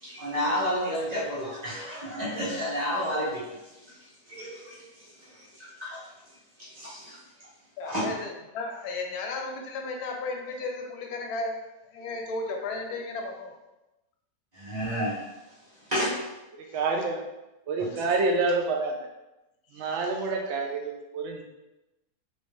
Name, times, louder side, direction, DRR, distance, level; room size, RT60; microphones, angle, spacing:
voice 1, 0.0-3.4 4.3-4.8 5.2-5.3 5.6-6.0 6.6-7.2 7.8-8.0 14.5-15.2 15.9-16.1, equal, 30° right, -8 dB, 1.0 m, -30 dB
voice 2, 7.8-11.6 11.9-13.5 16.7-16.8 17.9-18.1 19.7-20.3, left 3 dB, 75° left, 1 dB, 1.1 m, -35 dB
voice 3, 16.7-17.2 17.7-19.0 19.7-21.4, right 3 dB, 75° right, 2 dB, 0.6 m, -27 dB
3.1 x 2.6 x 3.2 m, 0.99 s
omnidirectional pair, 1.8 m